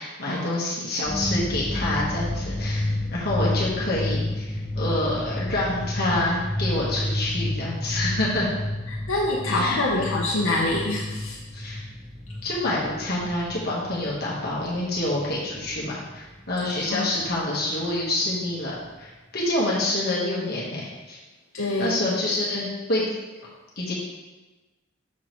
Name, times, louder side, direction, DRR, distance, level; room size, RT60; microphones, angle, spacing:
voice 1, 0.0-8.5 9.5-10.1 11.5-11.8 12.4-21.2 21.8-23.0 23.8-23.9, left 1 dB, 50° left, -5 dB, 1.3 m, -27 dB
sound 1, 1.0-16.1 16.4-17.5 17.9-18.0 18.3-19.0, left 1 dB, ahead, 1.1 m, -31 dB
voice 2, 9.1-11.4 16.9-17.1 21.5-22.2, left 2 dB, 70° left, -4 dB, 0.8 m, -25 dB
6.3 x 6.1 x 3.1 m, 1.2 s
head